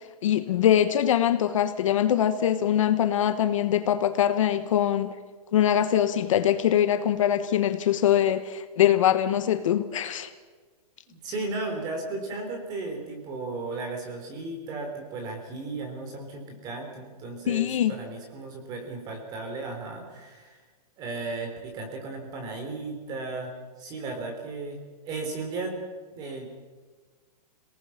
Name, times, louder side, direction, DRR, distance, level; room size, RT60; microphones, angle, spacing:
voice 1, 0.2-5.1 5.5-10.3 17.5-17.9, left 10 dB, 50° left, 10 dB, 1.2 m, -23 dB
voice 2, 11.1-20.6 21.0-23.5 23.8-24.8 25.1-25.7 26.1-26.5, right 3 dB, 20° right, 4 dB, 3.5 m, -35 dB
27.0 x 18.5 x 5.8 m, 1.4 s
hypercardioid pair, 170°, 21 cm